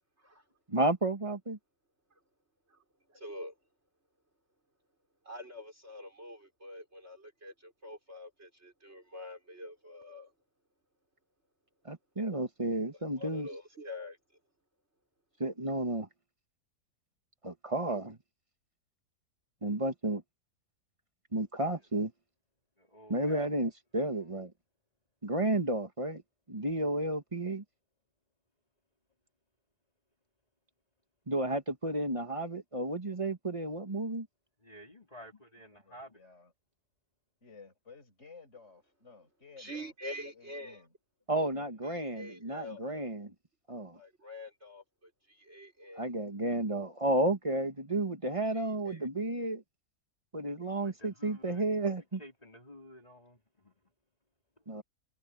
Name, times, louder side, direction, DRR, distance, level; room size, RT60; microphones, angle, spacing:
voice 1, 0.7-1.6 11.8-13.5 15.4-16.1 17.4-18.2 19.6-20.2 21.3-22.1 23.1-24.5 25.2-26.2 26.5-27.6 31.3-34.3 41.3-43.3 43.7-44.0 46.0-49.6 50.3-52.2 54.7-54.8, right 1 dB, 20° right, 1.7 m, -32 dB
voice 2, 3.1-3.5 5.2-10.3 12.9-14.2 39.6-40.8 41.8-43.1 43.9-46.1 48.5-49.1, left 1 dB, 45° right, 5.7 m, -46 dB
voice 3, 22.8-23.6 24.2-24.3 34.6-36.2 50.5-53.8 54.6-54.7, equal, 25° left, 4.2 m, -53 dB
voice 4, 35.6-36.5 37.4-39.9 40.2-40.9 41.4-41.9, left 4 dB, 45° left, 6.1 m, -55 dB
omnidirectional pair, 1.7 m